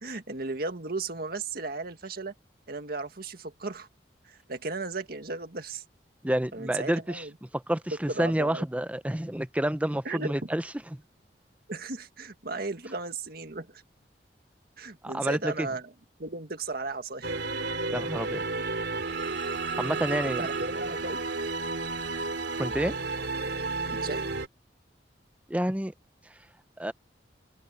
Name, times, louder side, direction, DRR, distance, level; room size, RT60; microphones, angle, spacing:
voice 1, 0.0-2.3 2.7-3.9 4.2-5.8 6.5-7.3 8.1-8.6 10.0-10.3 11.7-13.8 14.8-15.9 16.2-17.4 20.0-21.2 23.9-24.3, right 3 dB, 60° right, 1.8 m, -35 dB
voice 2, 6.2-7.2 7.5-10.6 10.9-11.0 15.0-15.7 17.9-18.4 19.8-20.5 22.6-22.9 25.5-25.9 26.8-26.9, right 1 dB, 10° right, 0.8 m, -29 dB
sound 1, 17.2-24.5, right 3 dB, 80° right, 2.6 m, -32 dB
head